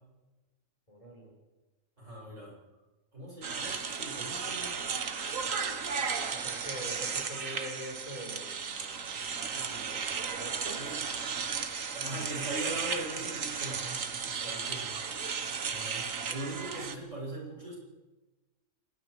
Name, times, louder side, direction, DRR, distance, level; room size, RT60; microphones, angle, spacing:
voice 1, 0.9-1.3 6.3-10.8 12.0-12.2, equal, 25° left, 0 dB, 5.6 m, -45 dB
voice 2, 2.0-2.5 3.1-5.0 8.7-8.9 10.8-11.0 11.7-14.9 15.7-17.8, right 1 dB, 70° right, -4 dB, 8.2 m, -41 dB
sound 1, 3.4-17.0, right 6 dB, 85° right, 1.8 m, -35 dB
29.5 x 19.0 x 4.9 m, 1.1 s
omnidirectional pair, 1.3 m